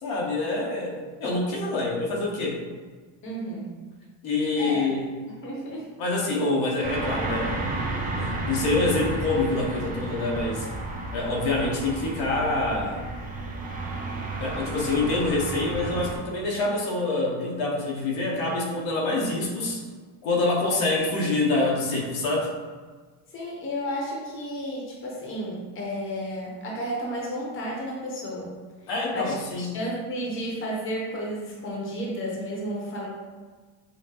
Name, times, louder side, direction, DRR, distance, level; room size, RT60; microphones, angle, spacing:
voice 1, 0.0-2.6 4.2-5.1 6.0-7.6 8.1-10.7 11.1-13.0 14.4-19.8 20.2-22.5 28.9-29.8, left 2 dB, 85° left, -2 dB, 1.1 m, -26 dB
voice 2, 3.2-3.7 4.6-4.9 5.4-5.9 23.3-28.5 29.1-33.1, equal, 25° left, -3 dB, 0.9 m, -32 dB
sound 1, 6.8-16.2, right 2 dB, 20° right, 0.3 m, -32 dB
5.6 x 2.1 x 2.9 m, 1.4 s
cardioid pair, 140°, 46 cm